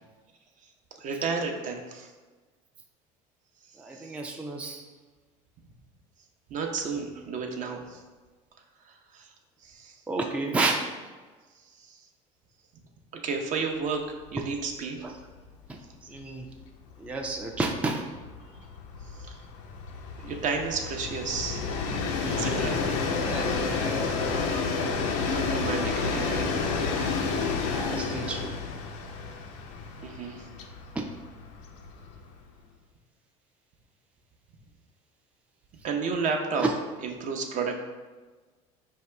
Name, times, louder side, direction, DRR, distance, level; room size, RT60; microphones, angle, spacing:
voice 1, 1.0-2.1 3.9-4.1 6.5-8.0 8.9-9.3 9.6-10.0 11.8-12.0 13.2-14.0 14.3-15.0 19.2-19.4 20.2-21.6 22.3-22.8 23.9-24.6 25.3-26.7 30.0-30.5 35.8-36.6 37.0-37.8, right 5 dB, 50° right, 3 dB, 0.6 m, -32 dB
voice 2, 3.8-4.9 10.1-10.8 15.0-15.1 15.7-16.5 17.0-18.0 22.2-22.5 23.2-24.4 27.1-27.2 27.7-28.5 30.9-31.0 36.6-36.7, right 3 dB, 5° right, 2 dB, 0.4 m, -31 dB
Train, 14.2-14.4 14.7-14.8 15.1-32.5, left 4 dB, 80° left, 0.5 m, -31 dB
4.6 x 2.8 x 3.2 m, 1.3 s
supercardioid pair, 90°, 17 cm